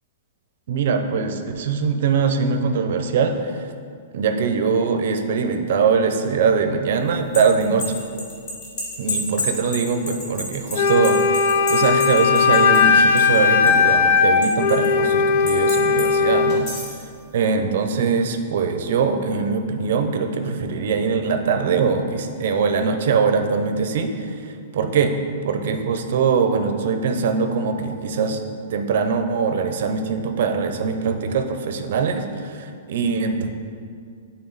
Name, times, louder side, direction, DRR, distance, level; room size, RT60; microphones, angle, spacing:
voice 1, 0.7-3.7 4.1-8.0 9.0-16.7 17.3-25.1 25.4-28.4 28.7-33.5, right 5 dB, 55° right, 6 dB, 0.6 m, -22 dB
sound 1, 7.1-13.4 13.7-14.9 15.5-16.1 16.5-17.0, left 1 dB, 30° left, 1.6 m, -30 dB
Wind instrument woodwind instrument, 10.7-16.6, left 5 dB, 50° left, 0.4 m, -17 dB
10.5 x 3.7 x 4.0 m, 2.3 s
hypercardioid pair, 175°, 0 cm